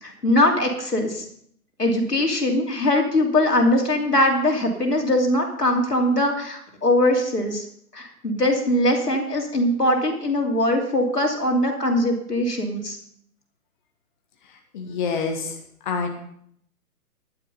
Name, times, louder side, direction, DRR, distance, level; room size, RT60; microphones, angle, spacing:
voice 1, 0.0-1.2 1.8-7.6 7.9-13.0, left 1 dB, 85° left, 2 dB, 3.1 m, -21 dB
voice 2, 14.7-15.6 15.8-16.1, left 5 dB, 30° left, 3 dB, 1.6 m, -26 dB
11.0 x 9.6 x 5.5 m, 0.68 s
figure-of-eight pair, 135°, 46 cm